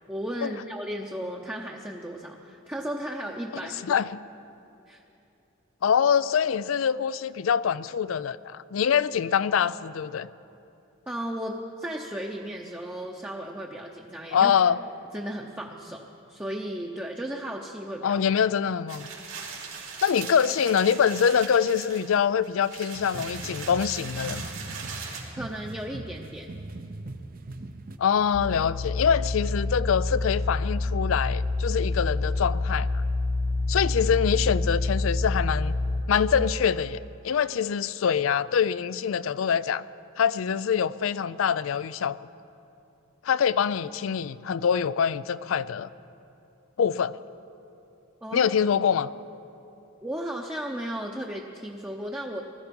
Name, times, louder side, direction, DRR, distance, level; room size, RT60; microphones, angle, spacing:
voice 1, 0.1-4.0 4.9-5.0 11.1-14.5 15.1-18.2 25.4-26.6 48.2-48.5 50.0-52.4, equal, 10° right, -1 dB, 0.7 m, -35 dB
voice 2, 5.8-10.3 14.3-14.8 18.0-19.1 20.0-24.4 28.0-32.9 33.7-35.8 36.1-37.0 37.2-39.8 40.2-42.2 43.2-45.9 46.8-47.1 48.3-49.1, left 7 dB, 85° left, 17 dB, 0.4 m, -24 dB
sound 1, 18.9-25.2, right 5 dB, 90° right, 2.9 m, -39 dB
sound 2, 22.9-28.0, right 2 dB, 45° right, 0.7 m, -40 dB
sound 3, 28.3-36.0, left 2 dB, 55° left, 1.2 m, -27 dB
19.5 x 13.5 x 5.3 m, 2.7 s
head